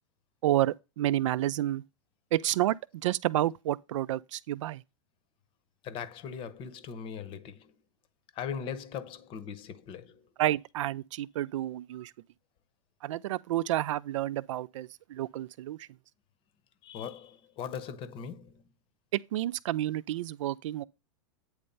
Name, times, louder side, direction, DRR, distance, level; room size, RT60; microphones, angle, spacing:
voice 1, 0.4-1.8 2.3-2.8 3.0-4.8 10.4-12.1 13.0-15.8 19.1-20.8, right 14 dB, 70° right, 0.5 m, -30 dB
voice 2, 5.8-7.7 8.3-10.3 16.8-18.6, left 7 dB, 35° left, 0.9 m, -40 dB
8.9 x 3.3 x 5.4 m
hypercardioid pair, 135°, 16 cm